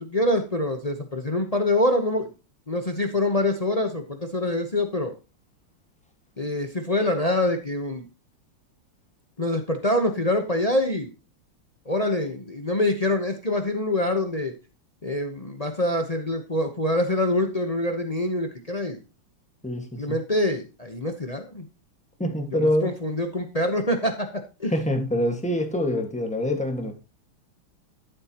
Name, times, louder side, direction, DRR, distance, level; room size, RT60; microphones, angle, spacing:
voice 1, 0.0-2.3 2.7-5.1 6.4-8.0 9.4-11.1 11.9-14.5 15.0-19.0 20.0-21.7 22.8-24.3 24.6-24.7, left 1 dB, 35° left, 5 dB, 0.6 m, -25 dB
voice 2, 19.6-20.2 22.2-22.9 24.7-26.9, left 1 dB, 5° left, 4 dB, 1.4 m, -25 dB
12.5 x 7.6 x 2.9 m, 0.30 s
omnidirectional pair, 2.3 m